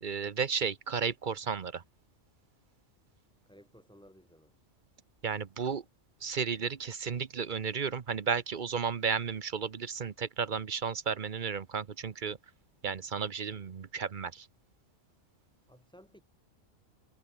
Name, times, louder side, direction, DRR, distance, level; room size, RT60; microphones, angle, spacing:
voice 1, 0.0-1.8 5.2-5.8 6.2-12.4 12.8-14.5, right 6 dB, 45° right, 0.9 m, -33 dB
voice 2, 3.4-4.5 15.7-16.2, equal, 5° left, 2.8 m, -57 dB
omnidirectional pair, 1.3 m